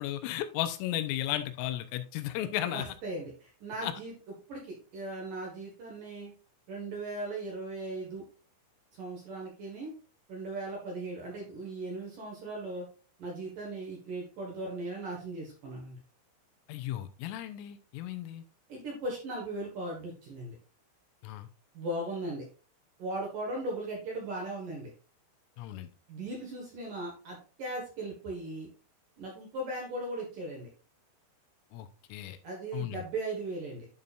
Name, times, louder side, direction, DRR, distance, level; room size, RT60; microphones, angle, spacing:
voice 1, 0.0-2.9 3.8-3.9 16.7-18.4 21.2-21.5 25.6-25.9 31.7-32.4 32.7-33.0, left 13 dB, 85° left, 9 dB, 3.3 m, -35 dB
voice 2, 2.7-4.1 4.5-6.3 6.7-8.2 8.9-9.9 10.3-12.9 13.2-16.0 18.7-20.6 21.7-22.5 23.0-24.9 26.1-28.7 29.2-30.7 32.4-33.9, right 2 dB, 60° right, -1 dB, 2.3 m, -38 dB
11.5 x 5.4 x 2.5 m, 0.37 s
omnidirectional pair, 5.8 m